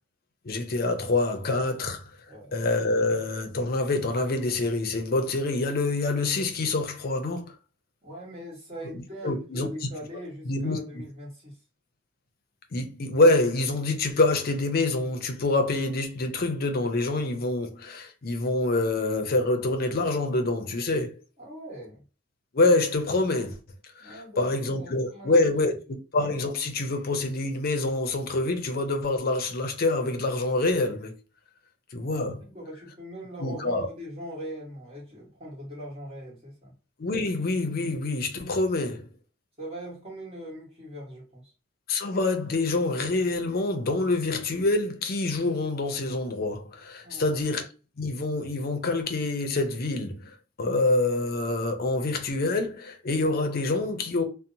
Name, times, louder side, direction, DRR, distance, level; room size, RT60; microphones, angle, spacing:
voice 1, 0.4-2.1 2.5-7.5 9.2-9.7 10.5-10.8 12.7-21.1 22.5-23.6 24.0-31.1 31.9-32.4 33.4-33.9 37.0-39.1 41.9-47.7 48.0-54.2, left 2 dB, 50° left, 0.5 m, -26 dB
voice 2, 2.3-2.6 8.0-11.6 21.4-22.0 24.0-25.4 25.9-26.0 32.4-36.7 39.6-41.5 47.0-47.4, equal, 30° right, 1.3 m, -41 dB
2.8 x 2.0 x 2.6 m
head